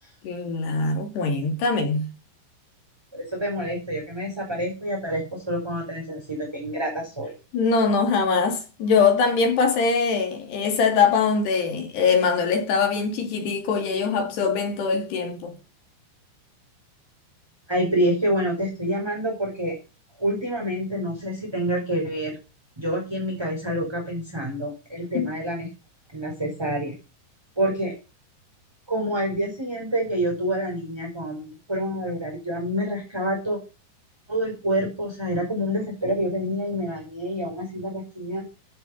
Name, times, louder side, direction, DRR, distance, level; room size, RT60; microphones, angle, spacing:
voice 1, 0.2-2.1 7.5-15.5 25.1-25.3, left 5 dB, 65° left, 4.9 m, -22 dB
voice 2, 3.1-7.3 17.7-19.7 20.2-22.3 22.8-25.7 26.1-26.9 27.5-27.9 28.9-33.6 34.3-38.4, equal, 5° right, 5.1 m, -27 dB
15.0 x 8.1 x 5.9 m
omnidirectional pair, 5.4 m